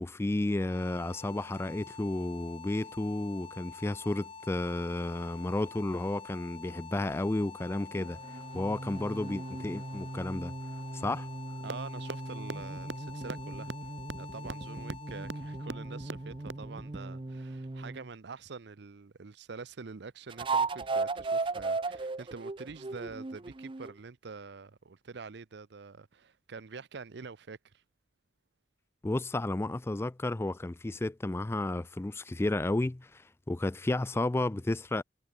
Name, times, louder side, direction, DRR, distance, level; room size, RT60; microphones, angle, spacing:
voice 1, 0.0-10.5 10.9-11.3 29.0-35.0, left 2 dB, 15° left, 0.3 m, -32 dB
sound 1, 0.5-17.4, left 5 dB, 30° left, 0.8 m, -48 dB
sound 2, 7.9-18.1 20.3-24.0, right 3 dB, 30° right, 0.6 m, -37 dB
voice 2, 11.6-13.7 14.2-27.8, right 4 dB, 65° right, 0.6 m, -46 dB
sound 3, 11.7-11.8 12.1-12.2 12.5-12.6 12.9-13.0 13.3-13.4 13.7-13.8 14.1-14.2 14.5-14.6 14.9-15.0 15.3-15.4 15.7-15.8 16.1-16.2 16.5-16.6, right 3 dB, 85° right, 1.1 m, -36 dB
head